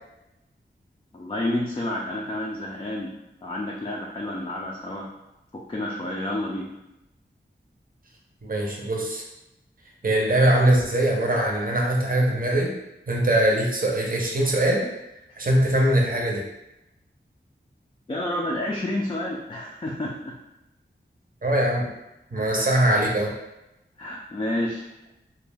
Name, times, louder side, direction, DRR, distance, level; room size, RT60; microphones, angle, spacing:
voice 1, 1.1-3.1 3.4-5.1 5.5-6.7 18.1-20.3 22.4-22.7 24.0-24.9, left 1 dB, 25° left, -2 dB, 0.3 m, -30 dB
voice 2, 8.4-9.2 10.0-12.7 13.1-14.8 15.4-16.4 21.4-21.8 22.3-23.3, right 1 dB, 45° right, -1 dB, 0.6 m, -22 dB
2.2 x 2.1 x 3.2 m, 0.91 s
wide cardioid pair, 65°, 20 cm